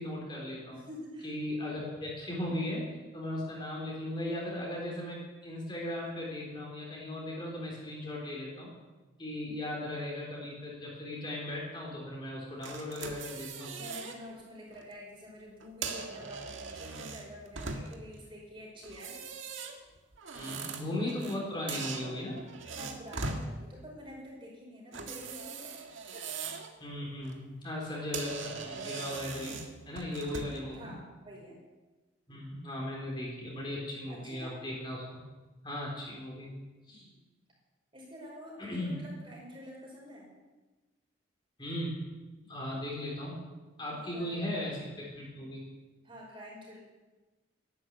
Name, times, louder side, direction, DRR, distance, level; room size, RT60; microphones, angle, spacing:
voice 1, 0.0-0.8 1.2-2.9 3.1-8.7 9.2-13.7 20.3-22.4 26.8-29.6 29.8-31.0 32.3-35.0 35.6-36.5 36.9-37.1 38.6-38.9 41.6-42.0 42.5-43.4 43.8-45.6, left 1 dB, 25° left, -3 dB, 3.9 m, -37 dB
voice 2, 0.7-1.3 13.7-19.2 20.3-21.9 22.7-25.9 26.1-26.3 30.6-31.6 34.1-34.5 36.9-37.2 37.9-40.3 43.9-44.7 46.0-46.8, equal, 25° right, -2 dB, 5.3 m, -48 dB
sound 1, 12.6-14.2 14.6-14.8 15.6-18.1 18.8-21.4 21.7-23.5 24.9-26.7 27.1-27.4 27.8-27.9 28.1-30.7, right 4 dB, 85° right, 1.8 m, -40 dB
13.5 x 11.5 x 8.4 m, 1.2 s
head